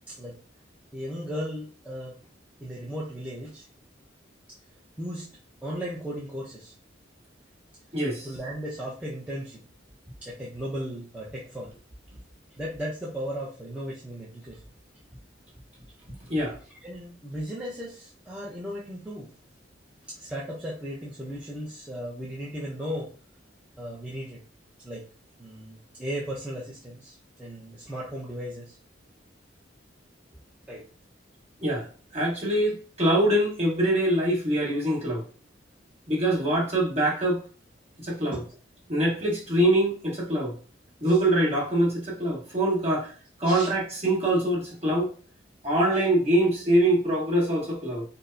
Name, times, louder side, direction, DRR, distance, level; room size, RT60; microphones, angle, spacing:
voice 1, 0.9-2.1 2.6-3.7 5.0-5.3 5.6-6.7 8.2-9.6 10.2-11.7 12.6-14.6 16.8-19.3 20.0-23.1 23.8-24.4 24.8-25.0 25.4-28.8 30.7-30.8 38.3-38.4 43.4-43.7, equal, 5° right, -6 dB, 0.6 m, -36 dB
voice 2, 7.9-8.3 16.3-16.6 31.6-31.9 32.1-35.2 36.1-37.4 38.0-38.4 38.9-40.5 41.0-43.1 43.4-45.1 45.6-48.0, right 1 dB, 35° right, -3 dB, 1.3 m, -24 dB
4.6 x 2.0 x 2.6 m, 0.38 s
head